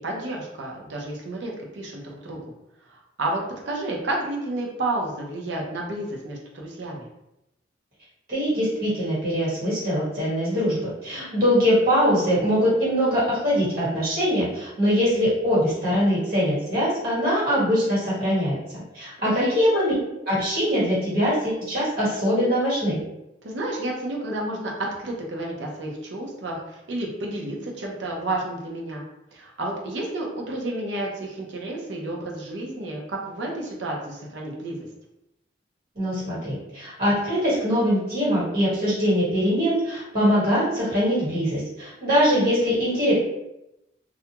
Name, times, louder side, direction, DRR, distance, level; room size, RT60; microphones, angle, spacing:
voice 1, 0.0-2.4 2.9-7.1 19.2-19.6 23.4-24.7 25.0-29.0 29.3-34.8, right 2 dB, 75° right, -1 dB, 0.6 m, -31 dB
voice 2, 8.3-18.6 18.9-19.9 20.2-23.0 35.9-43.1, equal, 50° right, -9 dB, 1.5 m, -22 dB
2.4 x 2.2 x 2.8 m, 0.88 s
head